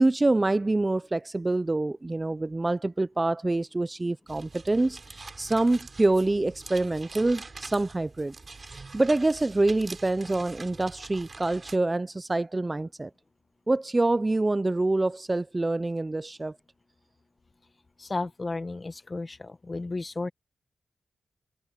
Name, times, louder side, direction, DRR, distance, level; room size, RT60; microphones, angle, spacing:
voice 1, 0.0-8.3 8.9-13.1 13.7-16.6, right 2 dB, 20° right, 0.4 m, -26 dB
sound 1, 4.3-11.8, right 3 dB, 35° right, 4.6 m, -45 dB
voice 2, 18.0-20.3, left 3 dB, 30° left, 1.3 m, -33 dB
wide cardioid pair, 120°, 0 cm